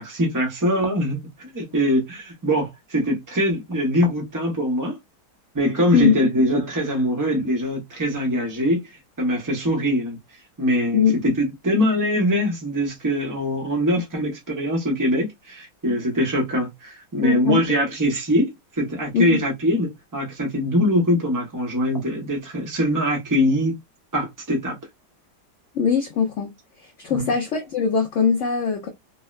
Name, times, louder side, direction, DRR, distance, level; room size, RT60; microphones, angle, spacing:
voice 1, 0.0-5.0 5.5-8.8 9.2-10.2 10.6-18.5 18.8-23.8 24.1-24.8 27.1-27.3, equal, 30° right, 0.3 m, -22 dB
voice 2, 17.2-17.7 19.1-19.4 25.7-26.5 26.8-28.9, left 6 dB, 85° left, 0.6 m, -21 dB
3.6 x 2.1 x 2.3 m
omnidirectional pair, 2.0 m